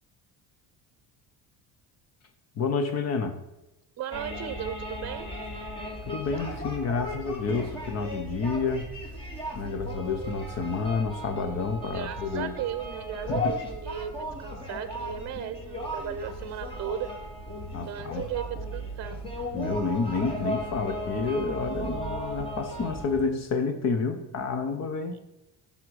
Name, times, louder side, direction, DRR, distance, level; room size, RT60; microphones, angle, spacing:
voice 1, 2.6-3.4 6.0-8.9 9.5-12.5 13.3-13.6 17.7-18.3 19.5-25.2, left 4 dB, 40° left, 7 dB, 1.4 m, -29 dB
voice 2, 4.0-5.3 11.9-17.1 17.9-19.2, right 9 dB, 45° right, 12 dB, 0.9 m, -36 dB
sound 1, 4.1-23.2, equal, 15° left, 2.3 m, -36 dB
15.0 x 5.8 x 5.0 m, 0.95 s
cardioid pair, 150°, 38 cm